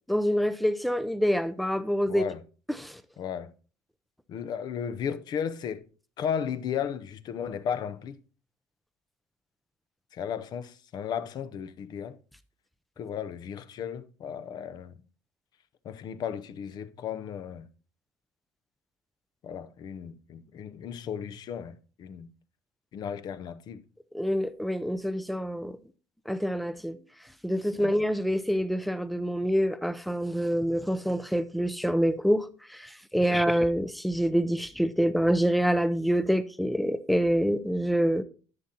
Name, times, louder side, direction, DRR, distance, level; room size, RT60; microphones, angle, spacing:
voice 1, 0.1-2.2 2.8-3.0 24.1-25.8 26.3-27.0 27.4-38.2, equal, ahead, 0.5 m, -26 dB
voice 2, 2.1-2.4 3.2-3.5 4.3-5.8 6.2-8.2 10.1-12.2 13.0-15.0 15.8-17.7 19.4-22.3 22.9-23.8 27.8-27.9 33.2-33.4, left 8 dB, 50° left, 0.6 m, -35 dB
11.0 x 7.6 x 2.8 m
cardioid pair, 115°, 9 cm